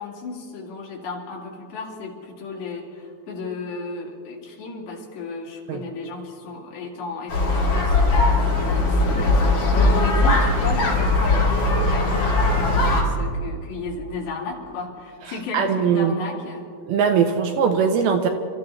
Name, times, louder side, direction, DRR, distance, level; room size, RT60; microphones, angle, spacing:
voice 1, 0.0-16.7, left 4 dB, 75° left, -2 dB, 4.5 m, -34 dB
sound 1, 7.3-13.0, left 2 dB, 60° left, 5.1 m, -19 dB
voice 2, 15.5-16.1 16.9-18.3, right 6 dB, 80° right, 5 dB, 2.4 m, -20 dB
28.0 x 14.0 x 3.3 m, 2.3 s
omnidirectional pair, 5.0 m